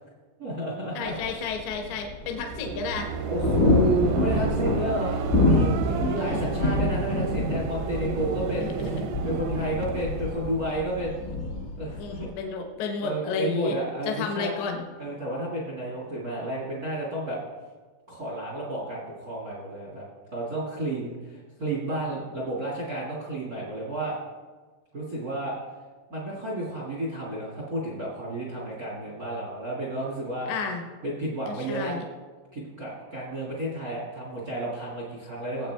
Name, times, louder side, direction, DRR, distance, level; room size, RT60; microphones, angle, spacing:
voice 1, 0.4-1.4 3.3-8.7 9.2-11.2 11.7-12.3 13.0-14.5 15.0-17.4 18.1-20.0 20.3-24.2 24.9-25.5 26.1-30.5 31.0-32.0 32.5-35.7, right 1 dB, 65° right, -3 dB, 0.8 m, -31 dB
voice 2, 0.9-3.1 6.1-6.6 8.6-9.1 12.0-13.8 14.1-14.9 30.5-30.8 31.5-32.0, left 4 dB, 80° left, 3 dB, 3.3 m, -32 dB
sound 1, 1.1-12.3, left 2 dB, 55° left, 0.9 m, -27 dB
sound 2, 2.3-11.4, right 6 dB, 85° right, 2.9 m, -32 dB
18.5 x 8.0 x 3.4 m, 1.4 s
omnidirectional pair, 5.3 m